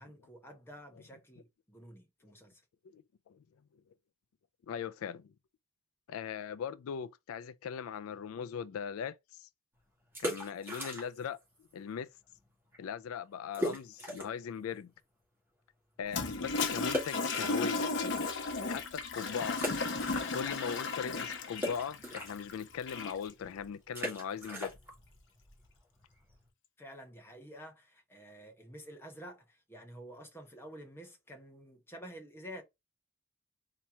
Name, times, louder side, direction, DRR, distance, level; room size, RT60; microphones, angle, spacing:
voice 1, 0.0-2.6 26.8-32.6, equal, 10° left, 1.0 m, -50 dB
voice 2, 2.9-3.4 4.7-5.3 6.1-9.5 10.2-11.4 11.7-12.1 12.8-14.9 16.0-17.9 18.7-19.6 20.3-24.8, left 7 dB, 85° left, 0.3 m, -39 dB
sound 1, 10.0-11.4 11.6-11.7 12.3-12.5 12.7-12.8 13.5-14.5 14.9-15.0 16.9-18.2 18.7-18.8 19.5-20.7 21.0-26.5, equal, 10° right, 1.9 m, -40 dB
Toilet flush, 16.1-23.3, left 3 dB, 60° left, 0.9 m, -35 dB
4.3 x 2.9 x 3.4 m
head